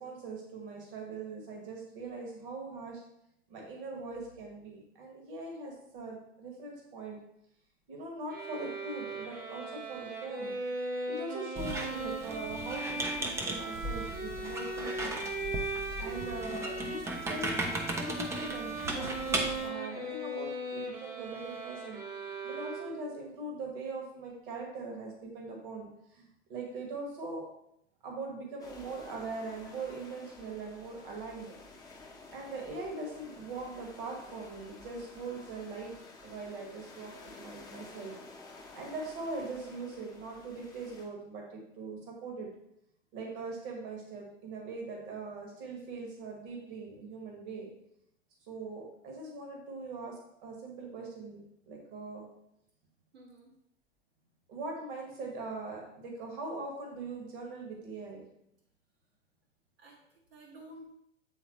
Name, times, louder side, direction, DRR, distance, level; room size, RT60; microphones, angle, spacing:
voice 1, 0.0-3.0 3.5-7.2 7.9-10.6 11.1-15.3 16.0-17.0 17.3-17.6 18.0-22.0 22.4-27.4 28.0-31.5 32.3-36.0 36.2-38.1 38.7-42.5 43.1-47.7 48.5-52.3 54.5-58.2, right 3 dB, 45° right, 0 dB, 1.7 m, -41 dB
sound 1, 8.3-23.2, right 2 dB, 25° right, 1.1 m, -38 dB
Squeak, 11.6-19.7, right 1 dB, 10° right, 0.4 m, -37 dB
sound 2, 28.6-41.0, left 3 dB, 10° left, 0.9 m, -52 dB
voice 2, 53.1-53.5 59.8-61.0, right 1 dB, 60° right, -4 dB, 1.6 m, -52 dB
8.1 x 3.8 x 3.1 m, 0.77 s
figure-of-eight pair, 95°, 36 cm